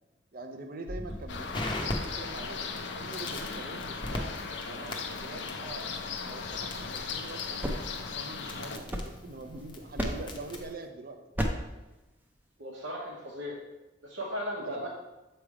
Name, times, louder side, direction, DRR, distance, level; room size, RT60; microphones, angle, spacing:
voice 1, 0.3-4.3 4.6-5.9 6.2-11.4 14.6-14.9, right 2 dB, 50° right, 5 dB, 0.6 m, -44 dB
Crackle, 0.9-10.7, left 1 dB, 25° left, 0.7 m, -40 dB
sound 1, 1.3-8.8, left 5 dB, 65° left, 0.6 m, -37 dB
sound 2, 7.6-9.6 10.0-10.5 11.4-11.8, equal, 10° right, 0.5 m, -34 dB
voice 2, 12.6-13.6 14.0-14.9, equal, 80° right, -5 dB, 1.0 m, -36 dB
7.3 x 3.3 x 4.7 m, 1.0 s
head